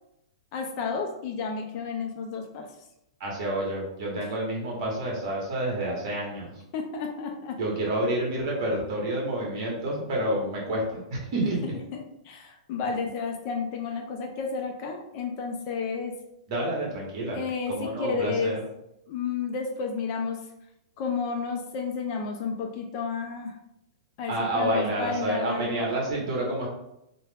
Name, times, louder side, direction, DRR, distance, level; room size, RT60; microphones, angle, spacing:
voice 1, 0.5-2.7 4.2-4.3 6.7-7.6 11.6-16.1 17.3-18.6 19.1-20.4 21.0-23.6 24.2-25.9, left 5 dB, 35° left, 3 dB, 0.3 m, -31 dB
voice 2, 3.2-6.5 7.6-11.6 16.5-17.4 17.7-18.6 24.3-26.7, right 1 dB, 40° right, -3 dB, 1.0 m, -29 dB
2.3 x 2.1 x 3.2 m, 0.82 s
hypercardioid pair, 160°, 4 cm